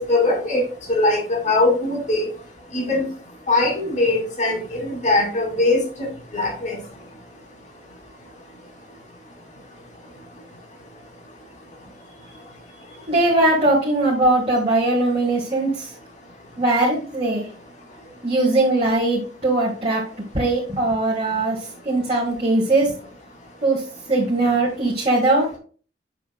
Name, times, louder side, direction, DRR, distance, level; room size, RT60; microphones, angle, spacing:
voice 1, 0.1-0.6 0.9-2.3 2.7-3.0 3.5-6.1 6.3-6.8, left 2 dB, 40° left, 1 dB, 2.5 m, -21 dB
voice 2, 13.1-15.9 16.6-17.5 18.2-20.0 20.3-21.6 21.9-22.9 23.6-23.8 24.1-25.5, right 2 dB, 35° right, -4 dB, 1.8 m, -20 dB
7.2 x 6.7 x 2.3 m, 0.40 s
head